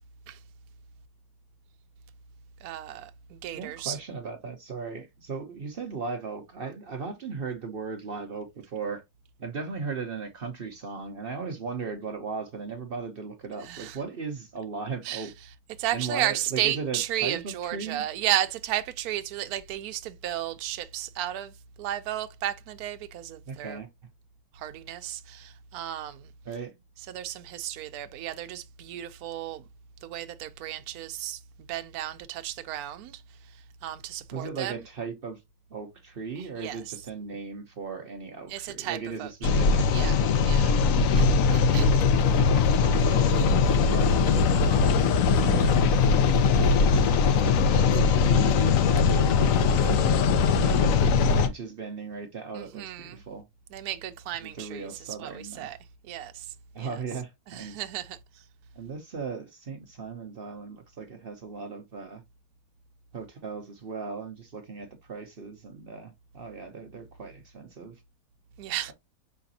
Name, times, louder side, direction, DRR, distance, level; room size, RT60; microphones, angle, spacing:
voice 1, 2.6-4.0 13.6-14.0 15.0-15.3 15.8-23.8 24.5-26.3 27.1-29.6 30.0-31.4 31.7-34.8 36.4-36.9 38.5-39.6 39.9-40.7 41.1-41.3 41.5-41.9 52.5-53.2 53.7-55.8 56.0-56.9 57.5-58.4 68.6-68.9, right 12 dB, 70° right, 1.0 m, -34 dB
voice 2, 3.5-9.0 9.4-15.3 15.9-18.0 23.5-23.9 26.4-26.7 34.3-35.4 35.7-40.2 41.2-41.7 42.9-50.0 50.5-53.5 54.4-55.7 56.7-57.8 58.8-62.2 63.1-68.0, right 5 dB, 55° right, 0.6 m, -37 dB
sound 1, 39.4-51.5, left 5 dB, 70° left, 0.8 m, -21 dB
4.9 x 3.4 x 2.7 m
omnidirectional pair, 1.9 m